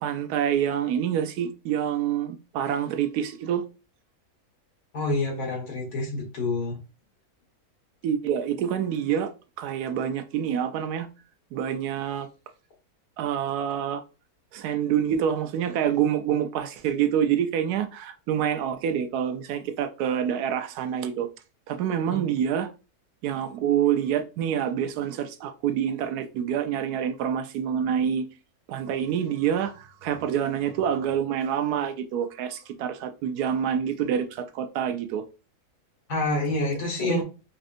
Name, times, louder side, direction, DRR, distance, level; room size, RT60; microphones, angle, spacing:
voice 1, 0.0-3.6 8.0-9.3 9.6-11.1 11.5-12.3 13.2-14.0 14.5-21.3 21.7-22.7 23.2-28.2 28.7-35.2 37.0-37.2, right 9 dB, 85° right, 1.1 m, -27 dB
voice 2, 4.9-6.8 36.1-37.2, left 2 dB, 85° left, 2.0 m, -27 dB
5.2 x 2.5 x 2.5 m
omnidirectional pair, 1.6 m